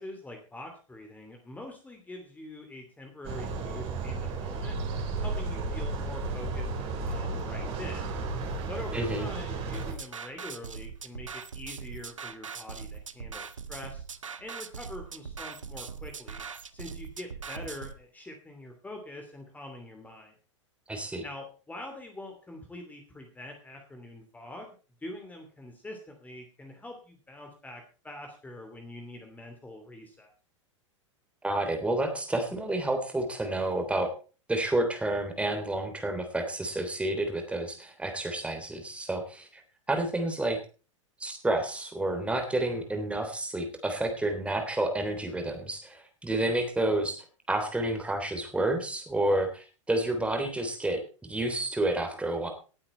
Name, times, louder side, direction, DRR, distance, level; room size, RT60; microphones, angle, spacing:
voice 1, 0.0-4.8 5.2-8.1 8.7-14.0 14.4-16.4 16.7-20.3 21.2-24.7 25.0-30.3, left 1 dB, 10° left, 3 dB, 2.9 m, -44 dB
sound 1, 3.2-9.9, right 3 dB, 40° right, 4.0 m, -33 dB
voice 2, 8.9-9.3 20.9-21.2 31.4-34.1 34.5-39.6 39.9-40.6 41.2-52.5, right 1 dB, 5° right, 5 dB, 3.3 m, -30 dB
sound 2, 9.7-17.9, right 6 dB, 80° right, 0.9 m, -41 dB
18.5 x 8.8 x 4.4 m, 0.36 s
figure-of-eight pair, 95°, 16 cm